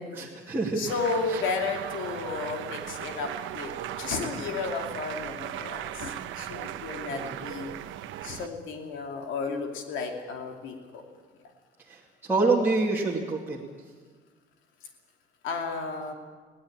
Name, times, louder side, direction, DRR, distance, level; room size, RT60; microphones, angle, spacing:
voice 1, 0.2-0.8 1.3-1.4 7.1-7.4 11.9-13.6, right 3 dB, 10° right, -5 dB, 2.3 m, -27 dB
voice 2, 0.7-3.7 4.0-7.7 8.2-11.0 15.4-16.1, left 4 dB, 70° left, 3 dB, 2.6 m, -33 dB
sound 1, 0.9-8.5, right 12 dB, 70° right, 1.1 m, -37 dB
21.0 x 17.5 x 8.7 m, 1.5 s
cardioid pair, 180°, 21 cm